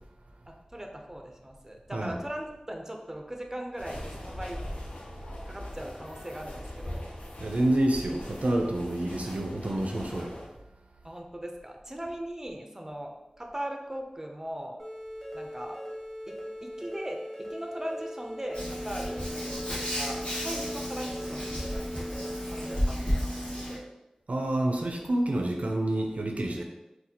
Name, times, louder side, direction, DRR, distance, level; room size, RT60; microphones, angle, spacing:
voice 1, 0.5-4.6 5.4-7.1 11.0-14.8 15.3-15.8 16.3-19.3 19.7-23.9, right 1 dB, 20° right, 2 dB, 0.5 m, -39 dB
sound 1, 3.8-10.5, left 1 dB, 70° left, 0.6 m, -41 dB
voice 2, 7.4-10.4 24.3-26.6, right 1 dB, 75° right, 2 dB, 0.4 m, -28 dB
sound 2, 14.8-22.8, equal, 5° left, 1.1 m, -40 dB
Hands, 18.5-23.8, equal, 50° left, 1.2 m, -32 dB
4.0 x 2.2 x 2.8 m, 0.97 s
wide cardioid pair, 50°, 2 cm